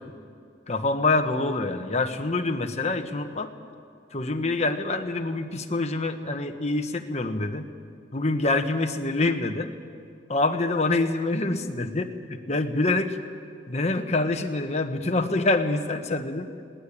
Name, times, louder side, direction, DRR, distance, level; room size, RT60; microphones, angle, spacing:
voice 1, 0.7-3.5 4.1-7.7 8.1-9.7 10.3-13.2 13.7-16.5, left 2 dB, 40° left, 6 dB, 1.3 m, -26 dB
22.0 x 18.0 x 8.7 m, 2.3 s
head